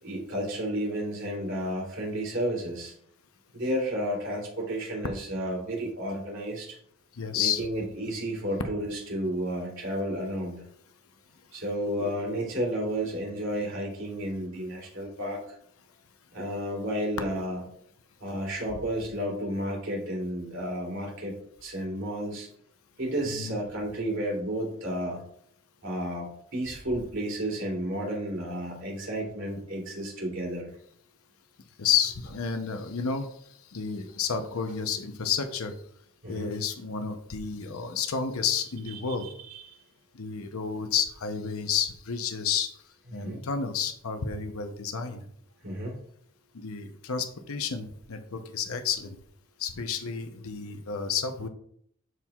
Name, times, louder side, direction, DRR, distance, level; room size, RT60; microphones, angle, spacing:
voice 1, 0.0-2.9 3.5-6.8 7.3-10.6 11.5-15.5 16.3-17.6 18.2-21.3 21.6-22.5 23.0-25.2 25.8-30.7 36.2-36.6 38.9-39.8 43.1-43.4 45.6-46.0, right 1 dB, 65° right, -2 dB, 2.9 m, -32 dB
voice 2, 7.1-7.6 23.4-23.6 31.8-33.3 33.7-35.7 36.3-39.3 40.1-42.7 43.1-45.2 46.5-49.2 49.6-51.5, left 7 dB, 90° left, 7 dB, 0.7 m, -30 dB
12.5 x 4.6 x 2.3 m, 0.65 s
head